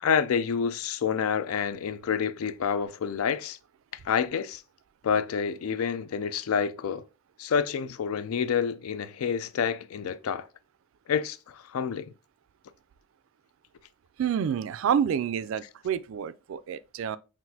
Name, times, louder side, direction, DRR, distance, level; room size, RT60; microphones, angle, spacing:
voice 1, 0.0-3.6 4.0-4.6 5.0-7.0 7.4-10.5 11.1-12.1, left 7 dB, 85° left, 0.4 m, -28 dB
voice 2, 14.2-17.2, right 8 dB, 65° right, 0.3 m, -28 dB
5.8 x 2.5 x 2.7 m
head